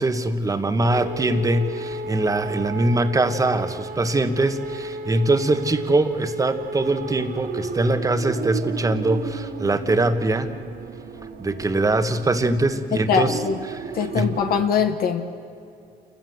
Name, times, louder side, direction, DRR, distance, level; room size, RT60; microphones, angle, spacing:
voice 1, 0.0-10.5 11.4-13.4 14.1-14.3, right 2 dB, 20° right, 9 dB, 1.5 m, -22 dB
sound 1, 0.9-14.7, right 3 dB, 65° right, 2.7 m, -34 dB
voice 2, 12.9-13.6 13.9-15.2, left 7 dB, 65° left, 7 dB, 1.4 m, -22 dB
28.5 x 15.0 x 8.0 m, 2.4 s
cardioid pair, 110°, 17 cm